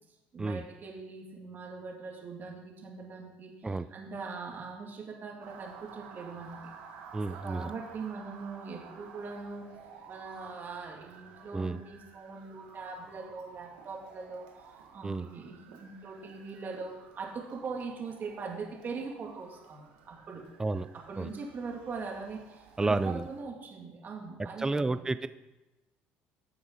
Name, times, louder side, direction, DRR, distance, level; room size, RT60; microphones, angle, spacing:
voice 1, 0.3-6.6 7.4-9.6 10.1-20.4 21.1-25.0, right 4 dB, 40° right, 0 dB, 2.4 m, -41 dB
Motor vehicle (road) / Siren, 5.4-23.4, right 6 dB, 85° right, 1.6 m, -53 dB
voice 2, 7.1-7.7 11.5-11.8 15.0-15.3 20.6-20.9 21.2-21.3 22.8-23.3 24.6-25.3, right 3 dB, 15° right, 13 dB, 0.4 m, -30 dB
11.0 x 6.9 x 4.0 m, 1.0 s
supercardioid pair, 85°, 5 cm